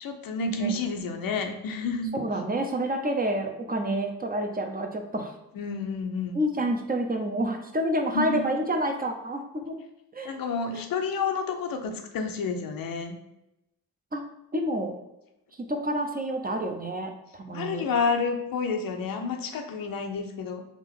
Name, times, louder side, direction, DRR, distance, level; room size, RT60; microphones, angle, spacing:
voice 1, 0.0-2.1 5.6-6.4 8.1-8.4 10.2-13.2 17.5-20.6, left 4 dB, 60° left, 5 dB, 0.7 m, -30 dB
voice 2, 2.1-5.3 6.3-9.8 10.1-10.4 10.7-10.8 14.1-14.2 14.5-15.0 15.6-17.9, right 1 dB, 20° right, 3 dB, 0.6 m, -29 dB
3.6 x 2.5 x 3.6 m, 0.89 s
hypercardioid pair, 45°, 40 cm